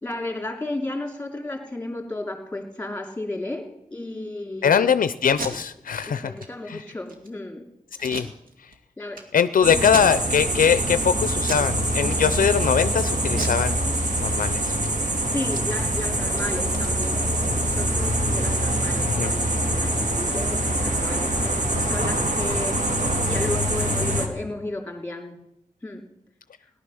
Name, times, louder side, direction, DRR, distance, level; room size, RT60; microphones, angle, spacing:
voice 1, 0.0-5.0 6.1-7.7 9.0-9.2 9.6-10.3 15.2-17.2 17.6-25.4 25.8-26.0, left 2 dB, 10° left, 2 dB, 2.7 m, -33 dB
voice 2, 4.6-6.2 6.7-6.8 8.0-8.3 9.3-13.8 14.2-14.8 19.2-19.3, left 7 dB, 70° left, 13 dB, 0.5 m, -21 dB
Packing tape duct tape, 5.2-5.5 5.9-6.1 6.4-6.5 6.9-7.3 8.0-8.8 9.1-9.2 9.8-10.5 10.9-11.1 11.4-11.7 12.0-12.7 13.3-14.4 14.7-14.9 15.2-17.8, right 2 dB, 75° right, 2.1 m, -36 dB
sound 1, 9.6-24.3, right 1 dB, 55° right, 2.1 m, -24 dB
18.0 x 11.0 x 6.3 m, 0.83 s
wide cardioid pair, 145°, 15 cm